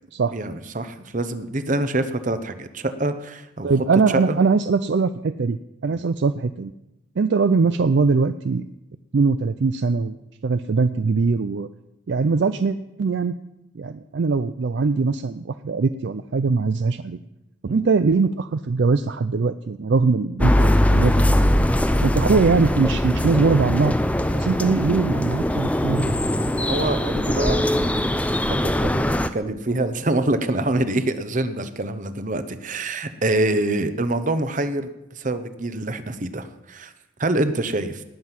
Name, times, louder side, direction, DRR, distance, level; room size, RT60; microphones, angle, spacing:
voice 1, 0.3-3.7 4.1-4.4 5.9-6.0 17.7-17.8 24.3-24.7 26.5-36.9 37.2-38.0, right 2 dB, 40° right, 11 dB, 0.9 m, -26 dB
voice 2, 3.6-6.7 7.2-8.6 9.1-10.2 10.4-11.7 12.1-13.4 13.8-17.2 17.6-21.7 22.0-24.0 24.3-26.1, right 4 dB, 55° right, 11 dB, 0.4 m, -21 dB
sound 1, 20.4-29.3, left 1 dB, 5° left, 0.5 m, -21 dB
19.0 x 7.5 x 6.0 m, 0.93 s
head